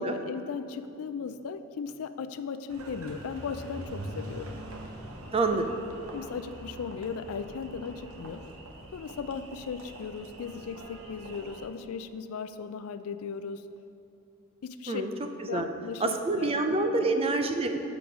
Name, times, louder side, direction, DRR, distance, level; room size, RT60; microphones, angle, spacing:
voice 1, 0.0-4.5 5.5-5.7 6.1-8.4 8.9-13.6 14.6-15.0 15.5-16.5 16.8-17.0, left 6 dB, 85° left, 11 dB, 0.4 m, -37 dB
Engine, 2.7-11.7, right 1 dB, 75° right, 0.9 m, -44 dB
voice 2, 5.3-5.6 14.9-15.1 15.5-15.7 16.0-17.8, right 3 dB, 25° right, 5 dB, 0.5 m, -27 dB
7.0 x 4.9 x 5.9 m, 2.8 s
head